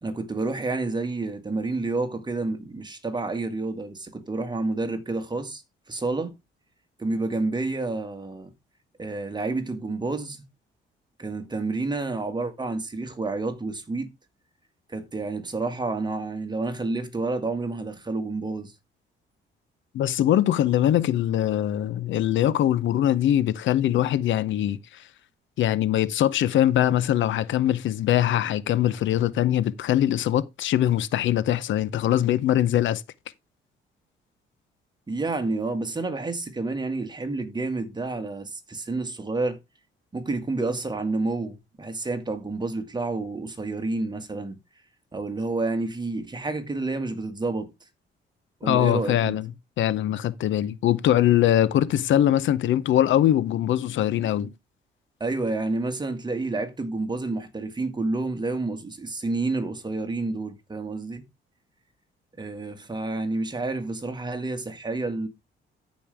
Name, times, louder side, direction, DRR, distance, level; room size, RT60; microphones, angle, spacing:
voice 1, 0.0-5.6 5.9-6.3 7.0-8.5 9.0-10.4 11.2-14.1 14.9-18.7 35.1-39.6 40.1-44.6 45.1-47.7 48.6-49.4 55.2-61.2 62.3-65.3, right 3 dB, 20° right, 1.9 m, -29 dB
voice 2, 19.9-25.0 25.6-33.0 48.6-49.5 49.8-54.5, left 12 dB, 75° left, 0.7 m, -22 dB
13.5 x 5.3 x 3.5 m
cardioid pair, 90°, 20 cm